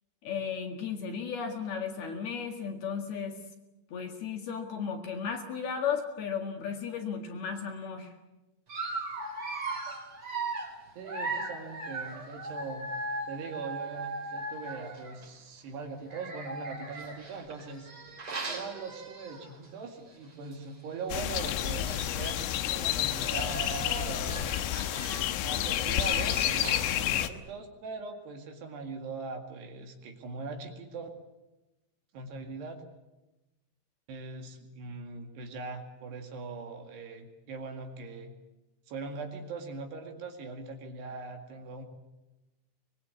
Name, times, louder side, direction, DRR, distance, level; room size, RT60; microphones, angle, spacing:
voice 1, 0.2-3.4 3.9-8.1, left 6 dB, 60° left, 3 dB, 3.4 m, -35 dB
Dog, 8.7-15.3 16.0-19.7 20.1-20.2 20.5-20.6 21.5-21.6 21.8-22.3 22.9-27.0, right 2 dB, 30° right, 4.1 m, -38 dB
voice 2, 11.0-12.9 13.3-17.9 18.5-24.6 25.4-31.1 32.1-32.8 34.1-38.3 38.9-41.8, right 4 dB, 60° right, 4 dB, 3.9 m, -41 dB
sound 1, 21.1-27.3, left 12 dB, 85° left, 3.7 m, -30 dB
24.0 x 21.5 x 8.4 m, 1.0 s
omnidirectional pair, 5.7 m